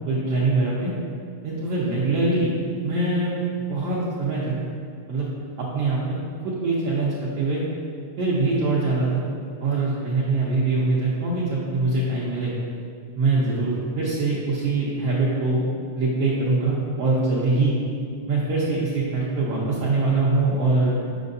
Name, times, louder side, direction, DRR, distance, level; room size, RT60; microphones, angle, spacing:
voice 1, 0.1-0.9 1.4-2.6 2.8-3.3 3.7-4.5 5.1-5.3 5.6-6.0 6.4-7.6 8.2-9.2 9.6-12.5 13.2-15.6 15.9-17.8 18.3-21.0, right 3 dB, 75° right, -6 dB, 1.4 m, -23 dB
8.2 x 6.2 x 2.6 m, 2.3 s
omnidirectional pair, 3.6 m